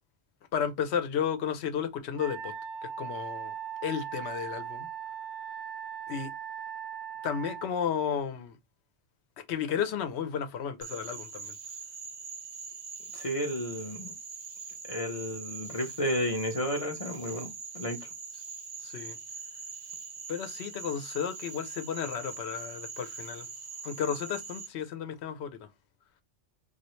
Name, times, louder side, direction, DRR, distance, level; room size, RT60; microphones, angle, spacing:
voice 1, 0.5-2.5 3.0-3.5 3.8-4.9 6.1-6.3 7.2-8.6 9.5-11.5 18.8-19.2 20.3-23.5 23.8-25.6, left 8 dB, 70° left, 0.9 m, -33 dB
Wind instrument woodwind instrument, 2.2-7.7, right 8 dB, 75° right, 0.9 m, -39 dB
Frog, 10.8-24.7, right 5 dB, 50° right, 0.6 m, -42 dB
voice 2, 13.1-14.1 14.9-18.1, equal, 40° left, 0.5 m, -32 dB
3.1 x 2.4 x 2.9 m
omnidirectional pair, 1.2 m